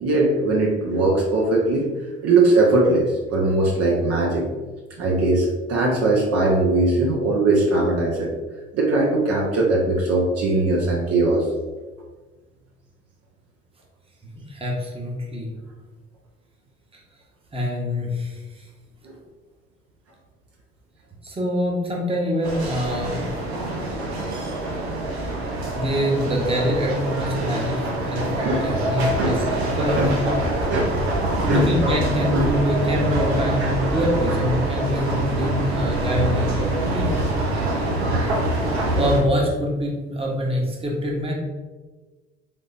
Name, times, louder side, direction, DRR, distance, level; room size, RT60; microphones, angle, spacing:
voice 1, 0.0-1.8 2.2-4.4 5.0-8.3 8.7-11.4 19.0-19.1 28.4-28.7 29.2-29.5 29.9-30.1 30.7-31.2 31.5-31.7 32.3-32.5 33.6-33.7, right 2 dB, 50° right, -2 dB, 0.8 m, -20 dB
voice 2, 14.5-15.5 16.9-17.0 17.5-18.7 21.2-23.3 25.7-30.1 31.4-37.2 38.5-41.3, equal, 20° right, -2 dB, 1.1 m, -25 dB
sound 1, 22.4-39.2, right 1 dB, 85° right, 0.7 m, -25 dB
3.7 x 3.6 x 2.6 m, 1.3 s
hypercardioid pair, 55°, 31 cm